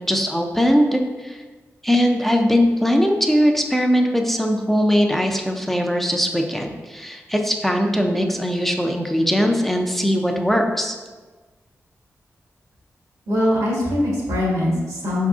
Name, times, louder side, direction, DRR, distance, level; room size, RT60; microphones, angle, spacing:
voice 1, 0.1-1.4 1.8-11.0, equal, 5° left, 2 dB, 0.5 m, -20 dB
voice 2, 13.3-15.3, left 1 dB, 85° right, -5 dB, 1.4 m, -21 dB
4.5 x 3.6 x 2.5 m, 1.3 s
cardioid pair, 50°, 6 cm